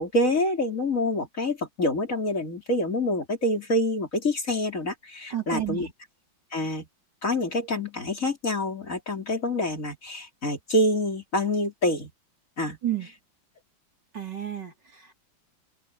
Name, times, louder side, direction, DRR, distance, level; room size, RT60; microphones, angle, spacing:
voice 1, 0.0-5.9 6.5-6.9 7.2-12.1 12.6-12.8, left 1 dB, 40° left, 3.9 m, -26 dB
voice 2, 5.3-5.9 12.8-13.1 14.1-15.1, right 11 dB, 60° right, 5.3 m, -31 dB
omnidirectional pair, 2.1 m